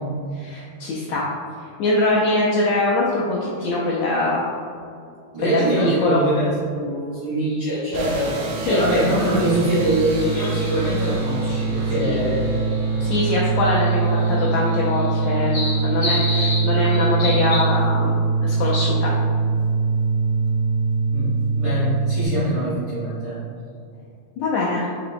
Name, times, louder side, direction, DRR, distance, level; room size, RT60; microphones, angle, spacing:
voice 1, 0.3-1.3 1.8-4.4 5.4-6.2 8.7-8.8 12.0-12.2 13.0-18.1 18.4-19.1 24.4-24.9, left 2 dB, 80° left, -5 dB, 1.5 m, -22 dB
voice 2, 5.3-6.5 6.7-12.4 21.1-21.3 21.5-23.4, right 1 dB, 50° right, -12 dB, 1.2 m, -23 dB
sound 1, 7.4-17.7, left 2 dB, 65° left, 1.2 m, -34 dB
sound 2, 7.9-22.3, right 4 dB, 80° right, 2.0 m, -23 dB
5.8 x 2.9 x 2.6 m, 2.4 s
omnidirectional pair, 3.5 m